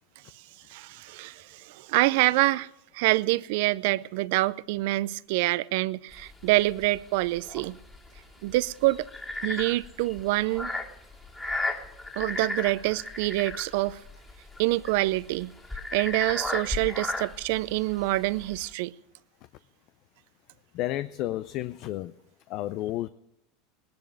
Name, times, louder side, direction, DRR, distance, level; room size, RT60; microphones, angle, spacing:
voice 1, 0.7-2.7 2.9-7.8 8.4-9.0 9.4-10.7 12.2-14.0 14.6-15.5 15.9-18.9, right 19 dB, 65° right, 0.5 m, -26 dB
sound 1, 6.1-18.7, left 2 dB, 10° left, 2.2 m, -35 dB
voice 2, 20.7-22.1 22.5-23.1, left 14 dB, 55° left, 0.5 m, -31 dB
19.0 x 10.5 x 6.4 m
hypercardioid pair, 85°, 0 cm